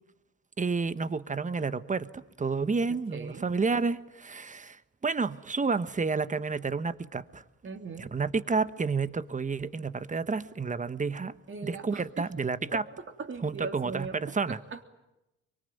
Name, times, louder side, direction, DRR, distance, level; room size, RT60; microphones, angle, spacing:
voice 1, 0.6-7.4 8.0-11.4 11.6-12.8 13.4-14.6, right 4 dB, 25° right, 1.2 m, -30 dB
voice 2, 3.1-3.4 7.6-8.1 11.5-12.2 12.7-12.8 13.2-14.2 14.5-14.8, right 4 dB, 40° right, 3.2 m, -39 dB
24.0 x 24.0 x 9.3 m
cardioid pair, 90°, 30 cm